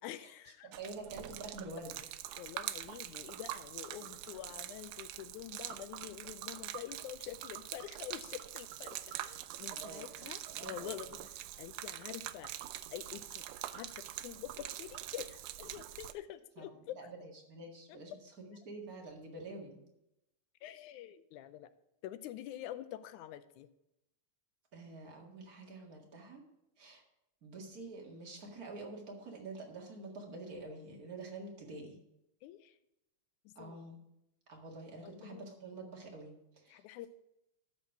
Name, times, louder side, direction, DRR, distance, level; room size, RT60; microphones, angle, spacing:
voice 1, 0.0-0.7 2.4-11.2 11.6-12.5 12.9-13.4 13.7-17.0 20.6-21.7 22.0-23.7 32.4-32.8 33.5-33.8 35.0-35.5 36.7-37.1, left 12 dB, 85° left, 13 dB, 2.0 m, -47 dB
voice 2, 0.6-2.0 9.7-10.1 10.5-11.3 16.6-16.7 16.9-18.1 18.4-19.8 24.7-26.4 26.8-27.0 27.4-32.0 33.6-34.0 34.5-36.8, right 3 dB, 35° right, 0 dB, 2.0 m, -47 dB
Gurgling / Liquid, 0.7-16.1, right 13 dB, 85° right, 1.4 m, -44 dB
13.0 x 4.5 x 6.0 m, 0.85 s
omnidirectional pair, 3.5 m